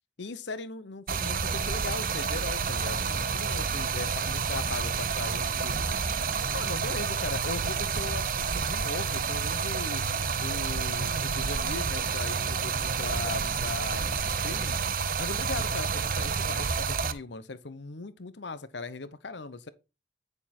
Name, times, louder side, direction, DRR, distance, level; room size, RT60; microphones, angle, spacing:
voice 1, 0.2-10.0 10.4-19.7, left 3 dB, 75° left, 0.9 m, -39 dB
Stream, 1.1-17.1, right 5 dB, 50° right, 0.8 m, -29 dB
9.7 x 6.8 x 4.2 m
head